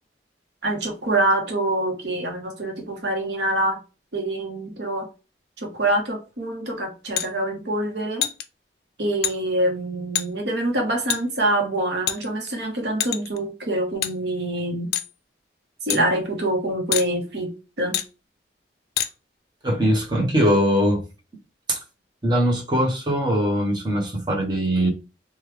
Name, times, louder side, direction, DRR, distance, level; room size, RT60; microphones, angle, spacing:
voice 1, 0.6-3.8 4.1-5.1 5.6-8.2 9.0-14.9 15.8-17.5 17.8-18.0, right 1 dB, 70° right, 1.0 m, -25 dB
sound 1, 7.2-7.3 8.2-8.4 9.2-9.4 10.2-10.3 11.1-11.2 12.1-12.5 13.0-13.4 14.0-14.1 14.9-15.1 15.9-16.0 16.9-17.1 17.9-18.1 19.0-19.1, left 11 dB, 60° left, 0.4 m, -25 dB
voice 2, 19.6-21.0 21.7-21.8 22.2-24.9, equal, 25° right, 0.9 m, -21 dB
3.1 x 2.3 x 3.2 m
head